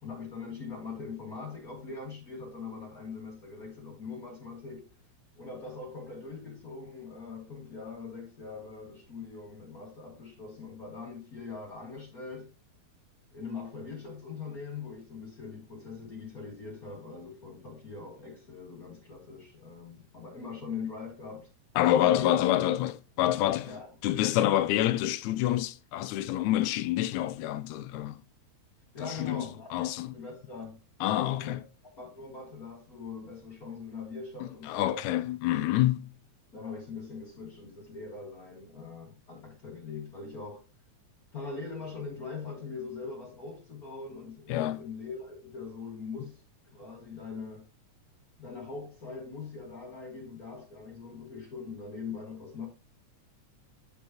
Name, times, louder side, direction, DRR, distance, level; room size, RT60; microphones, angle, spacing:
voice 1, 0.0-4.9 5.4-12.5 13.3-21.5 22.0-22.6 23.6-23.9 24.2-24.6 28.9-30.8 31.1-35.0 36.5-40.7 41.3-47.7 48.4-52.7, left 4 dB, 35° left, 2.0 m, -42 dB
voice 2, 21.8-23.7 24.0-28.2 29.0-29.5 29.7-30.2 31.0-31.6 34.7-36.1 44.5-44.8, left 13 dB, 80° left, 1.9 m, -27 dB
9.1 x 5.3 x 2.9 m
omnidirectional pair, 3.4 m